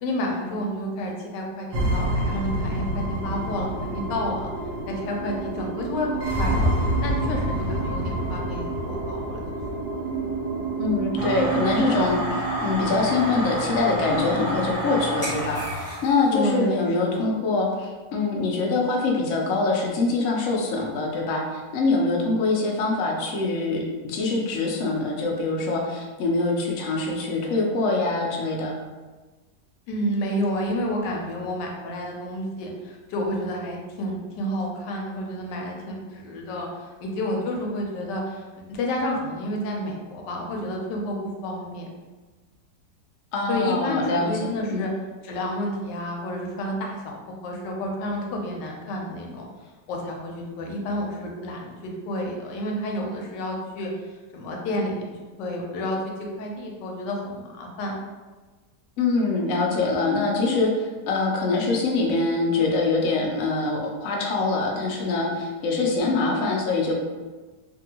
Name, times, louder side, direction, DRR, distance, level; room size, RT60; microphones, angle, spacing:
voice 1, 0.0-4.5 4.9-9.4 16.3-16.9 17.1-17.3 29.9-41.9 43.5-44.9 45.2-49.5 49.9-53.9 54.3-56.0 56.4-58.0, left 1 dB, 90° left, 0 dB, 1.3 m, -30 dB
sound 1, 1.7-15.7, right 2 dB, 75° right, 1.2 m, -28 dB
voice 2, 10.8-28.7 43.3-44.3 44.7-44.9 59.0-66.9, left 3 dB, 70° left, -1 dB, 0.7 m, -24 dB
sound 2, 11.2-16.3, equal, 5° right, 1.0 m, -30 dB
2.8 x 2.6 x 2.8 m, 1.3 s
omnidirectional pair, 1.9 m